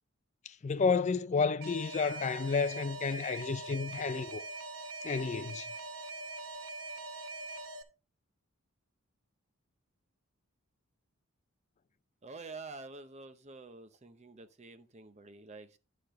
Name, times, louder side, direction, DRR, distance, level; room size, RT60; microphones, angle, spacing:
voice 1, 0.5-4.4 5.0-5.7, left 5 dB, 35° left, 0.4 m, -31 dB
Alarm, 1.6-7.8, right 2 dB, 90° right, 0.9 m, -43 dB
voice 2, 12.2-15.8, right 3 dB, 30° right, 0.7 m, -48 dB
9.6 x 6.8 x 3.0 m
head